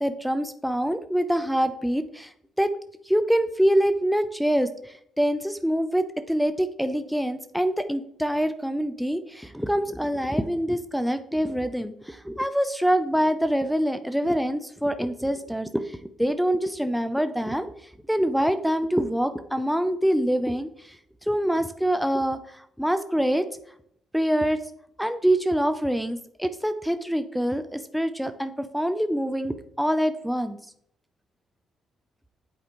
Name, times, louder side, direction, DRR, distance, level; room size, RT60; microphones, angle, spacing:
voice 1, 0.0-2.3 2.6-2.7 3.1-17.7 18.1-21.0 21.3-23.4 24.1-24.6 25.0-30.6, equal, ahead, 9 dB, 0.4 m, -25 dB
8.4 x 4.7 x 3.0 m, 0.69 s
cardioid pair, 90°, 0 cm